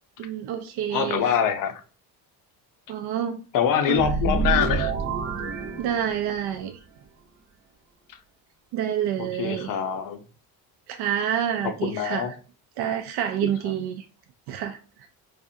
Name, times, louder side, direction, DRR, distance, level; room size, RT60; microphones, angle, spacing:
voice 1, 0.2-1.4 2.9-3.4 3.9-4.1 5.8-6.8 8.7-9.8 10.9-12.4 12.8-14.0 14.5-15.1, right 9 dB, 80° right, 0.5 m, -28 dB
voice 2, 0.9-1.8 3.5-4.9 9.2-10.2 11.8-12.3 13.6-13.7, left 8 dB, 55° left, 0.6 m, -24 dB
sound 1, 3.9-6.5, right 4 dB, 40° right, 0.8 m, -27 dB
4.1 x 2.4 x 2.6 m
cardioid pair, 115°, 38 cm